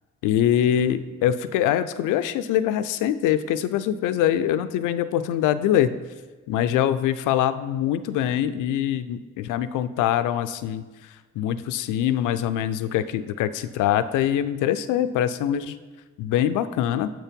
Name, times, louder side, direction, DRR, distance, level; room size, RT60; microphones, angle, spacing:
voice 1, 0.2-6.0 6.5-10.8 11.4-15.8 16.2-17.1, left 10 dB, 85° left, 13 dB, 0.5 m, -23 dB
7.5 x 4.6 x 5.1 m, 1.3 s
cardioid pair, 90°, 30 cm